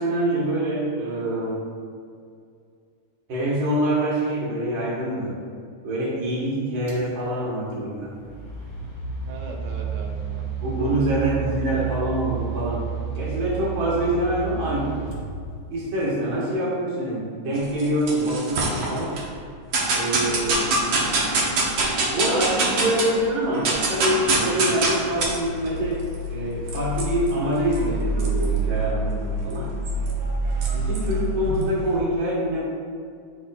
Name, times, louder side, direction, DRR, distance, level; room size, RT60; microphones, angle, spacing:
voice 1, 0.0-1.6 3.3-5.4 5.8-8.1 10.6-12.8 13.2-15.0 15.7-19.2 19.9-20.6 22.1-29.7 30.7-32.6, right 1 dB, 50° right, -6 dB, 2.0 m, -25 dB
sound 1, 6.9-7.1 8.0-16.0, right 7 dB, 35° left, 0.4 m, -31 dB
voice 2, 9.2-10.5 10.7-11.1 11.6-11.9 30.8-31.0, right 3 dB, 85° right, 0 dB, 2.3 m, -40 dB
sound 2, 17.6-19.2 19.7-23.2 23.5-32.0, right 2 dB, 70° right, 1.2 m, -25 dB
11.5 x 4.2 x 2.4 m, 2.2 s
omnidirectional pair, 3.5 m